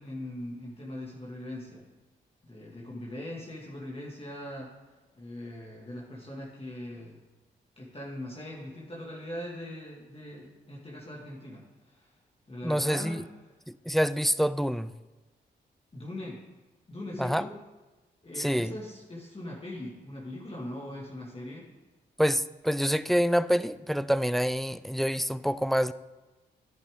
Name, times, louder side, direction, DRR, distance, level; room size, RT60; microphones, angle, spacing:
voice 1, 0.0-1.8 2.4-4.7 5.1-7.2 7.8-12.1 12.5-13.2 15.9-16.4 16.9-17.6 18.2-21.7, left 1 dB, 30° left, -4 dB, 2.1 m, -40 dB
voice 2, 12.6-13.2 13.7-14.9 17.2-17.4 18.4-18.7 22.2-25.9, equal, ahead, 15 dB, 0.4 m, -26 dB
10.5 x 8.5 x 3.7 m, 1.2 s
supercardioid pair, 50°, 20 cm